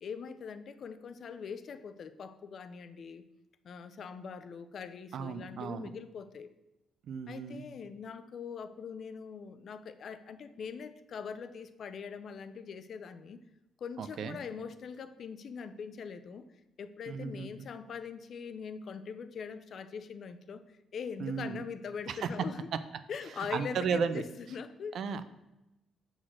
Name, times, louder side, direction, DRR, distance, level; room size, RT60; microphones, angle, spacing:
voice 1, 0.0-3.2 3.6-6.5 7.3-13.4 13.8-16.4 16.8-22.7 23.1-25.0, left 6 dB, 60° left, 12 dB, 0.5 m, -42 dB
voice 2, 5.1-5.9 7.1-7.6 14.0-14.4 17.1-17.5 21.2-21.6 22.1-22.5 23.5-24.2 24.9-25.3, right 6 dB, 65° right, 12 dB, 0.5 m, -34 dB
6.4 x 3.9 x 6.2 m, 0.95 s
cardioid pair, 90°, 0 cm